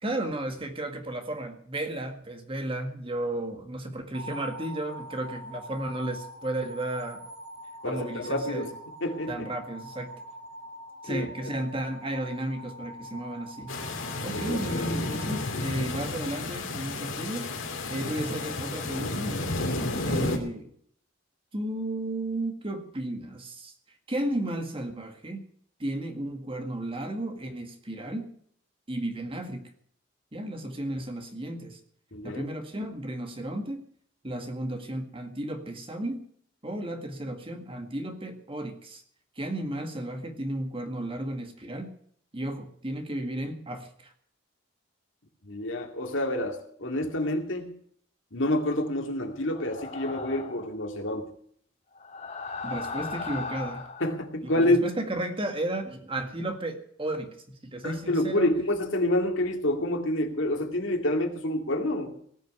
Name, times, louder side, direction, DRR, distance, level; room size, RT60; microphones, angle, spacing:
voice 1, 0.0-7.2 7.8-8.7 9.3-10.1 11.0-13.7 14.2-17.5 17.9-19.6 20.0-20.7 21.5-23.7 24.1-25.5 25.8-28.3 28.9-29.7 30.3-31.8 32.2-33.8 34.2-36.3 36.6-39.0 39.4-42.0 42.3-44.1 52.6-53.8 54.4-57.4 57.6-58.5, right 1 dB, 30° right, 5 dB, 1.9 m, -33 dB
sound 1, 4.1-16.3, equal, 70° right, 3.2 m, -44 dB
voice 2, 7.8-8.7 9.0-9.3 11.0-11.5 14.3-15.0 32.1-32.5 45.5-47.7 48.3-51.3 54.0-54.9 57.8-62.2, left 1 dB, 70° left, 4 dB, 2.3 m, -28 dB
sound 2, 13.7-20.4, left 2 dB, 90° left, 2.8 m, -31 dB
sound 3, 49.5-50.7 52.0-54.1, left 4 dB, 40° left, 3.5 m, -37 dB
18.5 x 6.8 x 9.4 m, 0.62 s
head